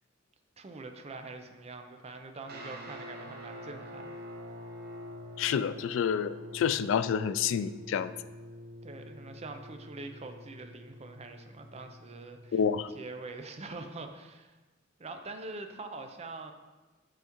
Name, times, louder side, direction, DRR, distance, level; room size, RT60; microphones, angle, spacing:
voice 1, 0.6-4.1 8.8-12.6 12.9-14.6 15.0-16.5, right 3 dB, 35° right, 6 dB, 0.6 m, -44 dB
sound 1, 2.4-12.9, left 1 dB, 55° right, 0.9 m, -46 dB
voice 2, 5.4-8.1 12.5-12.9, left 7 dB, 70° left, 14 dB, 0.3 m, -29 dB
6.4 x 5.7 x 3.0 m, 1.2 s
head